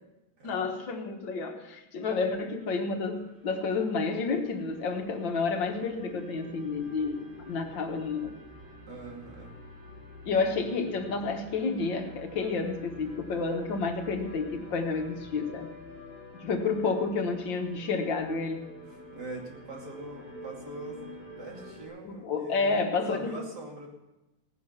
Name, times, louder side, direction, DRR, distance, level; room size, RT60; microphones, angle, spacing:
voice 1, 0.4-8.4 10.3-15.7 16.4-18.6 22.0-23.4, left 4 dB, 70° left, 5 dB, 1.9 m, -30 dB
sound 1, 2.2-21.9, left 2 dB, 75° right, 7.6 m, -48 dB
voice 2, 8.9-9.6 18.9-21.0 21.4-22.7 23.1-23.9, right 2 dB, 55° right, 0 dB, 3.0 m, -43 dB
17.0 x 10.5 x 5.7 m, 0.98 s
omnidirectional pair, 2.2 m